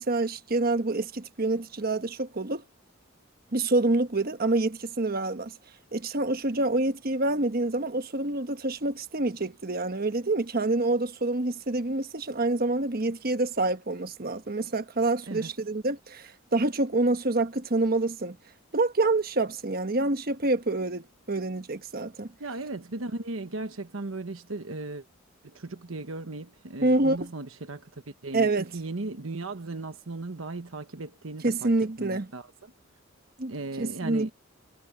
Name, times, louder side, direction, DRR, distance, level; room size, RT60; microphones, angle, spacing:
voice 1, 0.0-2.6 3.5-5.5 5.9-18.4 18.7-22.3 26.8-27.3 28.3-28.7 31.4-32.3 33.4-34.3, right 2 dB, 45° right, 1.2 m, -27 dB
voice 2, 22.4-25.0 25.4-31.7 32.0-32.7 33.5-34.3, right 2 dB, 90° right, 1.2 m, -37 dB
head